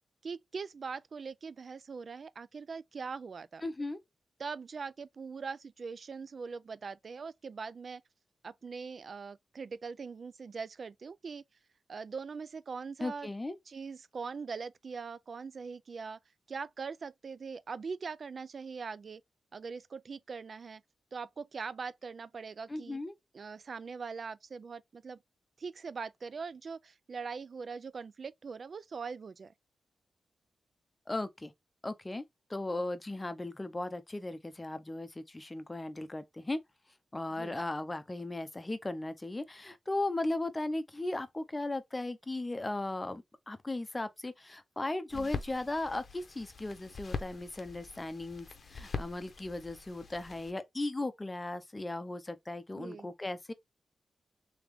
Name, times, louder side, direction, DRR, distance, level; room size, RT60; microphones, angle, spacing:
voice 1, 0.2-3.6 4.4-8.0 8.4-11.4 11.9-13.3 13.7-16.2 16.5-19.2 19.5-20.8 21.1-23.0 23.3-25.2 25.6-29.5 37.4-37.6 45.1-45.3 52.7-53.1, right 5 dB, 50° right, 0.3 m, -42 dB
voice 2, 3.6-4.0 13.0-13.6 22.7-23.1 31.1-31.5 31.8-32.2 32.5-36.6 37.1-53.5, left 2 dB, 15° left, 0.6 m, -37 dB
sound 1, 45.1-50.5, left 4 dB, 50° left, 0.7 m, -43 dB
3.5 x 3.5 x 3.4 m
wide cardioid pair, 125°, 0 cm